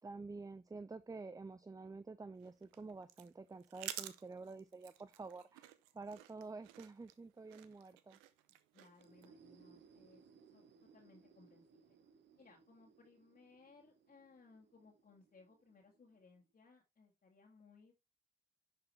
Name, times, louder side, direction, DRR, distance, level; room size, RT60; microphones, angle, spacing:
voice 1, 0.0-8.2, right 3 dB, 15° right, 0.5 m, -49 dB
sound 1, 2.4-9.3, right 14 dB, 90° right, 0.6 m, -52 dB
voice 2, 8.7-10.2 10.5-12.0 12.4-17.9, left 4 dB, 45° left, 1.9 m, -64 dB
sound 2, 8.9-16.5, right 6 dB, 65° right, 1.2 m, -66 dB
10.5 x 4.7 x 3.3 m
hypercardioid pair, 45°, 20 cm